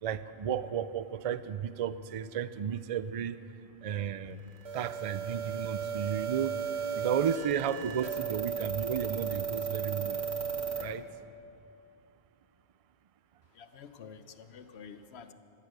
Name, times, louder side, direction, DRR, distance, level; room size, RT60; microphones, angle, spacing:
voice 1, 0.0-3.4 3.8-4.4 4.7-6.6 7.0-10.3 10.7-11.0, right 8 dB, 45° right, 14 dB, 0.5 m, -33 dB
sound 1, 4.6-10.8, right 7 dB, 90° right, 1.6 m, -35 dB
voice 2, 13.5-15.3, left 6 dB, 80° left, 10 dB, 1.1 m, -49 dB
15.5 x 14.0 x 6.6 m, 2.5 s
omnidirectional pair, 1.1 m